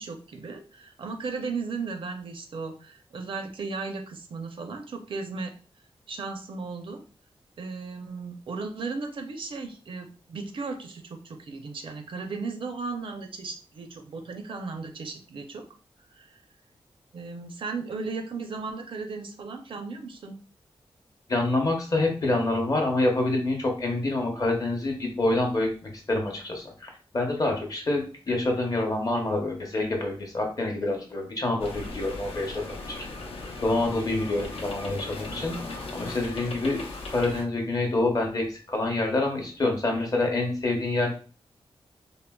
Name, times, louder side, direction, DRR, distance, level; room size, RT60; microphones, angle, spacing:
voice 1, 0.0-5.6 6.1-7.0 7.6-15.6 16.1-16.4 17.1-20.4, right 4 dB, 60° right, 5 dB, 0.5 m, -36 dB
voice 2, 21.3-33.1 33.6-36.8 37.1-41.1, left 2 dB, 40° left, 2 dB, 0.7 m, -27 dB
sound 1, 31.6-37.4, left 3 dB, 75° left, 0.5 m, -38 dB
3.6 x 2.0 x 2.2 m, 0.37 s
wide cardioid pair, 170°, 10 cm